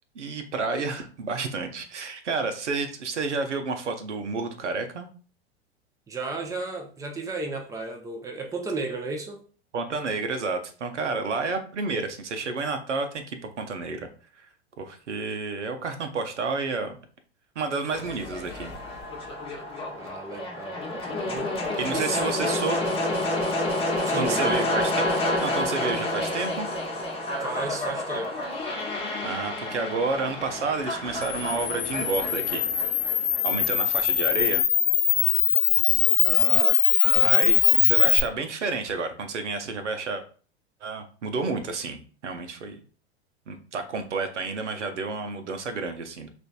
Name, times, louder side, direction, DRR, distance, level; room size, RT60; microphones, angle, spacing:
voice 1, 0.1-5.1 9.7-14.1 14.4-14.5 14.8-17.0 17.6-18.7 21.8-22.8 24.1-24.8 25.2-26.7 29.2-32.7 33.4-34.6 37.2-40.2 40.8-42.8 43.5-46.3, right 4 dB, 80° right, 6 dB, 0.7 m, -30 dB
voice 2, 6.1-9.4 20.0-21.6 21.9-22.2 24.1-24.6 27.4-28.3 36.2-37.8, right 3 dB, 10° right, 3 dB, 0.6 m, -34 dB
sound 1, 17.9-34.0, left 1 dB, 15° left, 1.0 m, -29 dB
Camera, 31.2-38.2, left 10 dB, 35° left, 0.6 m, -21 dB
5.0 x 2.5 x 2.3 m, 0.39 s
figure-of-eight pair, 95°, 35 cm